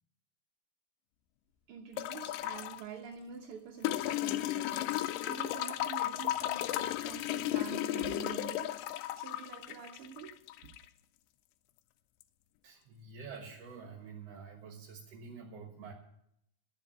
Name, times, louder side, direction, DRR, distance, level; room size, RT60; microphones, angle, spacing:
voice 1, 1.7-4.9 5.2-10.8, right 7 dB, 70° right, 2 dB, 1.3 m, -47 dB
sound 1, 2.0-2.8 3.8-10.8 12.2-12.3, left 14 dB, 80° left, 2.2 m, -34 dB
voice 2, 12.6-15.9, right 5 dB, 55° right, 1 dB, 2.2 m, -48 dB
12.5 x 7.1 x 9.3 m, 0.76 s
omnidirectional pair, 3.9 m